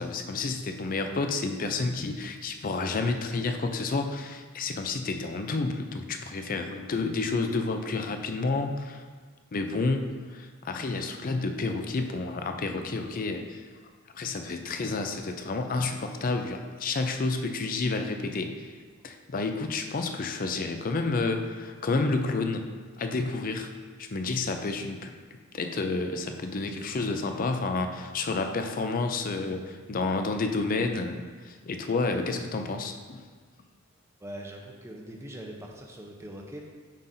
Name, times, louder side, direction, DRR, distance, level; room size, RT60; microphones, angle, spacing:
voice 1, 0.0-9.0 9.5-13.6 14.1-18.7 19.0-22.7 23.0-23.7 24.0-25.1 25.5-33.2, left 3 dB, 40° left, 6 dB, 0.4 m, -30 dB
voice 2, 34.2-36.6, right 1 dB, 10° right, 0 dB, 0.6 m, -42 dB
7.3 x 5.8 x 2.7 m, 1.5 s
head